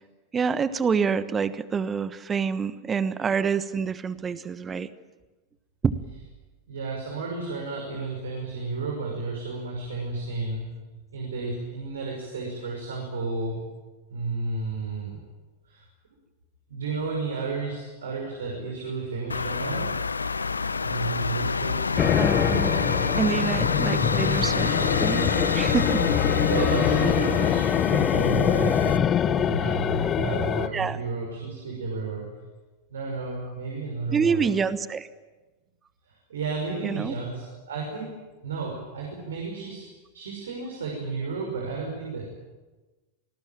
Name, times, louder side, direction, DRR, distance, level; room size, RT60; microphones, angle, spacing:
voice 1, 0.3-4.9 5.8-5.9 22.2-22.7 23.2-24.8 25.0-26.0 30.7-31.0 34.1-35.1 36.8-37.1, right 6 dB, 20° right, 15 dB, 1.2 m, -27 dB
voice 2, 6.7-10.7 11.1-13.6 14.1-15.2 15.7-15.8 16.7-19.9 20.8-22.0 26.5-32.2 32.9-34.5 36.1-38.1 38.4-39.9 40.1-42.2, right 3 dB, 65° right, 0 dB, 5.9 m, -32 dB
sound 1, 19.3-29.0, left 4 dB, 75° left, 0.8 m, -27 dB
sound 2, 22.0-30.7, left 9 dB, 25° left, 0.8 m, -24 dB
27.5 x 19.5 x 9.1 m, 1.2 s
figure-of-eight pair, 90°, 0 cm